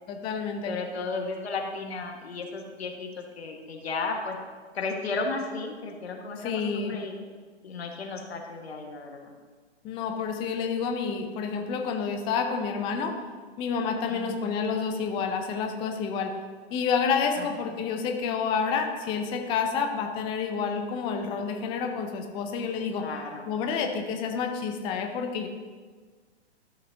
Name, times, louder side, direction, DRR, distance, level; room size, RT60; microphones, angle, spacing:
voice 1, 0.1-0.7 6.4-6.9 9.8-13.1 13.6-16.3 16.7-23.0 23.5-25.5, left 6 dB, 15° left, 4 dB, 0.5 m, -29 dB
voice 2, 0.6-4.4 4.7-7.2 7.6-9.3 14.1-14.5 17.4-17.5 17.7-17.8 23.0-23.5, left 3 dB, 65° left, 2 dB, 1.6 m, -34 dB
12.5 x 6.6 x 2.7 m, 1.5 s
figure-of-eight pair, 120°, 34 cm